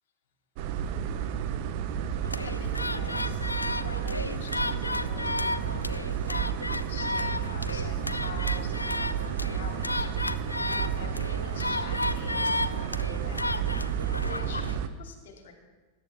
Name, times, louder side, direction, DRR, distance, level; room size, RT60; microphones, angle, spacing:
sound 1, 0.6-14.9, right 8 dB, 45° right, 0.9 m, -31 dB
sound 2, 2.2-14.8, left 2 dB, 85° left, 0.4 m, -33 dB
voice 1, 2.4-3.5 3.8-13.7 14.2-15.5, left 5 dB, 60° left, 2 dB, 2.6 m, -45 dB
20.5 x 10.5 x 3.5 m, 1.3 s
figure-of-eight pair, 90°, 0 cm